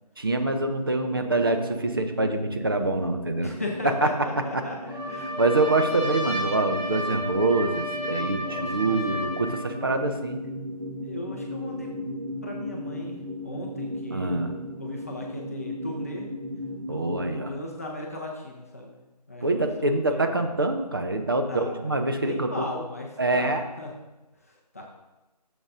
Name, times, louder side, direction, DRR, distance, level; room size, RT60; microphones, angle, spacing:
voice 1, 0.2-3.5 4.0-4.1 5.4-10.4 14.1-14.5 16.9-17.5 19.4-22.5 23.2-23.7, right 2 dB, 35° right, 5 dB, 0.6 m, -25 dB
sound 1, 1.0-17.6, equal, 75° right, 1.3 m, -37 dB
voice 2, 3.4-4.8 5.1-6.1 8.4-9.4 11.0-11.9 12.4-13.2 13.4-14.5 14.8-16.2 16.9-19.0 19.3-20.5 21.5-23.9 24.4-24.8, left 2 dB, 20° left, -1 dB, 0.7 m, -37 dB
Trumpet, 4.9-9.7, left 1 dB, 5° left, 1.0 m, -32 dB
12.5 x 7.0 x 2.6 m, 1.1 s
figure-of-eight pair, 165°, 21 cm